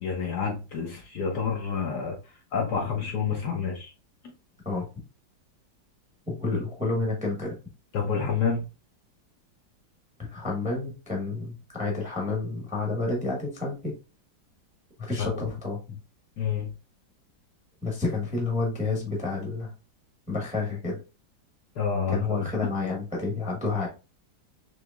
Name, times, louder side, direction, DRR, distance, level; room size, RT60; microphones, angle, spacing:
voice 1, 0.0-2.1 2.5-3.9 6.5-6.6 7.9-8.6 15.2-15.5 16.4-16.7 21.8-22.4, left 6 dB, 65° left, 1 dB, 1.2 m, -28 dB
voice 2, 6.3-7.5 10.2-13.9 15.0-16.0 17.8-19.7 20.3-21.0 22.1-23.9, left 3 dB, 5° right, -1 dB, 0.8 m, -30 dB
4.7 x 3.0 x 2.3 m, 0.31 s
omnidirectional pair, 2.2 m